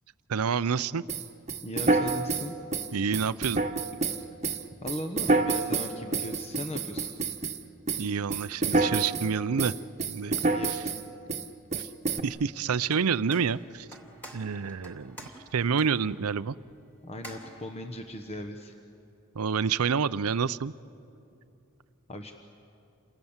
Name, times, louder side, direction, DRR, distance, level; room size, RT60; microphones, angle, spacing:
voice 1, 0.3-1.0 2.9-3.6 8.0-9.8 10.1-10.4 10.7-10.8 11.7-11.9 12.2-13.9 14.3-15.2 15.5-16.6 19.3-20.7, right 6 dB, 85° right, 16 dB, 0.6 m, -28 dB
sound 1, 1.1-7.6 7.9-9.3 9.6-11.0 11.3-11.5 11.7-12.2, right 3 dB, 30° right, 1.2 m, -28 dB
voice 2, 1.6-2.5 4.8-7.1 10.5-10.9 17.0-18.7 22.1-22.3, left 1 dB, 30° left, 5 dB, 1.1 m, -38 dB
sound 2, 12.8-18.5, equal, 10° left, 3.0 m, -50 dB
29.5 x 27.0 x 7.3 m, 2.8 s
head